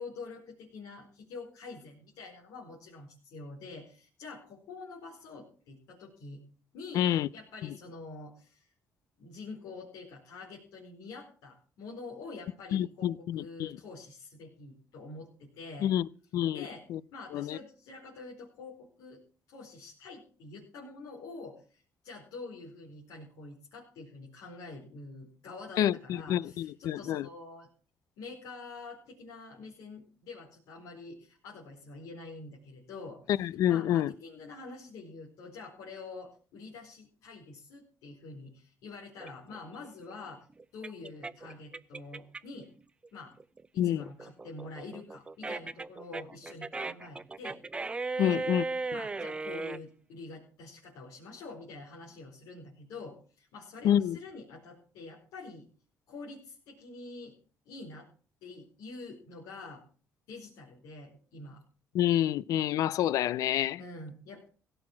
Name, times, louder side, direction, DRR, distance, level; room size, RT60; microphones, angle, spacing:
voice 1, 0.0-6.4 6.7-8.7 9.2-15.9 16.5-16.8 17.1-19.2 19.5-27.7 28.2-33.3 33.7-40.5 40.7-42.7 43.1-43.3 43.7-47.6 48.2-48.4 48.9-55.6 56.1-57.3 57.6-58.1 58.4-59.8 60.3-61.6 63.8-64.5, left 3 dB, 85° left, 4.6 m, -46 dB
voice 2, 6.9-7.3 12.7-13.8 15.8-16.1 16.3-16.6 16.9-17.0 17.3-17.6 25.8-27.3 33.3-34.1 43.8-44.0 48.2-48.6 53.8-54.2 61.9-63.8, left 11 dB, 70° left, 0.6 m, -28 dB
sound 1, 39.2-42.6 43.0-49.8, right 3 dB, 15° right, 0.6 m, -37 dB
16.5 x 7.9 x 7.2 m
cardioid pair, 120°, 6 cm